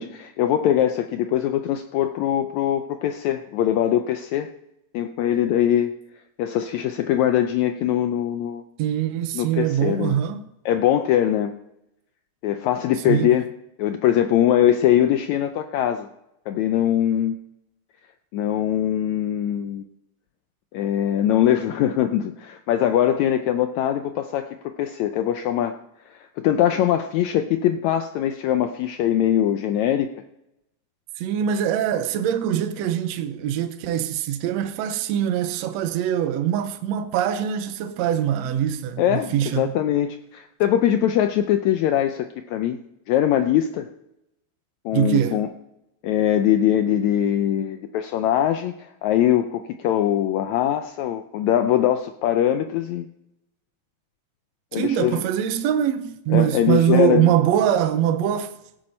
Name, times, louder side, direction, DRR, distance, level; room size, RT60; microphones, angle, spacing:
voice 1, 0.0-4.5 4.9-5.9 6.4-8.6 9.3-10.2 10.6-11.5 12.4-13.5 13.8-16.1 16.5-17.4 18.3-19.8 20.7-25.8 26.1-30.1 39.0-42.8 43.1-43.9 44.8-45.5 46.0-48.7 49.0-53.1 54.7-55.2 56.3-57.3, left 11 dB, 80° left, 1.7 m, -22 dB
voice 2, 8.8-10.4 13.1-13.3 31.2-39.8 44.9-45.4 54.7-58.5, right 10 dB, 75° right, 1.7 m, -23 dB
17.0 x 9.3 x 4.3 m
omnidirectional pair, 3.7 m